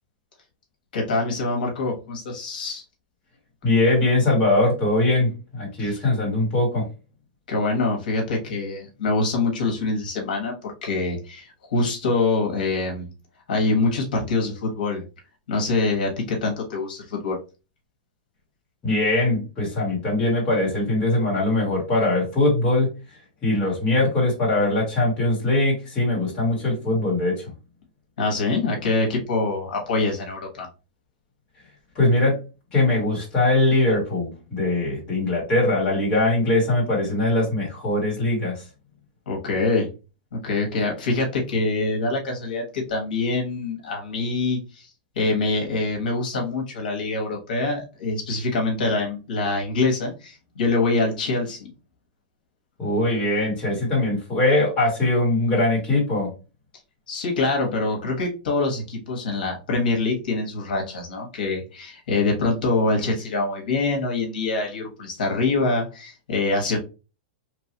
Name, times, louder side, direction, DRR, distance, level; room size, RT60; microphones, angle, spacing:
voice 1, 0.9-2.8 5.8-6.0 7.5-13.1 13.5-15.0 15.5-17.4 28.2-30.7 39.3-39.9 40.3-44.9 45.2-51.7 57.1-66.8, left 3 dB, 70° left, 1 dB, 1.0 m, -25 dB
voice 2, 3.6-6.9 18.8-22.9 23.4-27.4 31.9-32.4 32.7-38.6 52.8-56.3, left 2 dB, 20° left, -4 dB, 1.2 m, -21 dB
3.0 x 2.3 x 2.8 m, 0.30 s
supercardioid pair, 180°, 5 cm